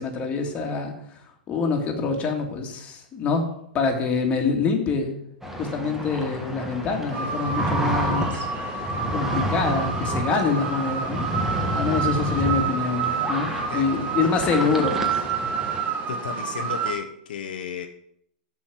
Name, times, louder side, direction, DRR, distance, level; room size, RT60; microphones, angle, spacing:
voice 1, 0.0-3.5 3.7-5.1 5.6-8.5 8.7-8.8 9.1-11.3 11.6-13.5 13.7-15.2, left 4 dB, 25° left, 1 dB, 2.1 m, -25 dB
sound 1, 5.4-15.8, equal, 5° right, 1.4 m, -30 dB
sound 2, 7.1-16.9, right 6 dB, 30° right, 1.4 m, -29 dB
voice 2, 16.1-17.9, left 7 dB, 75° left, 5 dB, 1.0 m, -33 dB
7.3 x 6.4 x 7.7 m, 0.72 s
hypercardioid pair, 135°, 5 cm